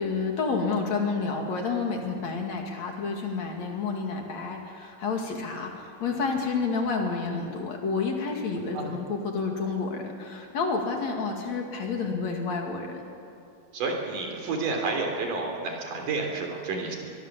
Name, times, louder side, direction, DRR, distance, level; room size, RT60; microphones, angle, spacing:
voice 1, 0.0-13.0, left 4 dB, 55° left, 2 dB, 3.3 m, -29 dB
voice 2, 13.7-17.0, right 3 dB, 70° right, 2 dB, 4.8 m, -30 dB
24.5 x 22.0 x 7.4 m, 2.6 s
omnidirectional pair, 3.9 m